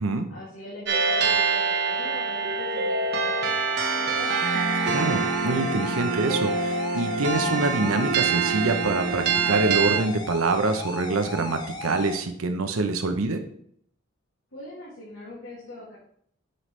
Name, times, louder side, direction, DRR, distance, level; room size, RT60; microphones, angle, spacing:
voice 1, 0.3-4.3 14.5-16.0, left 1 dB, 80° left, -8 dB, 2.4 m, -42 dB
sound 1, 0.9-10.0, right 4 dB, 55° right, 1.0 m, -25 dB
sound 2, 4.2-12.2, left 2 dB, 20° left, 0.9 m, -36 dB
voice 2, 4.9-13.4, right 3 dB, 85° right, 7 dB, 0.8 m, -26 dB
8.0 x 5.7 x 3.3 m, 0.66 s
head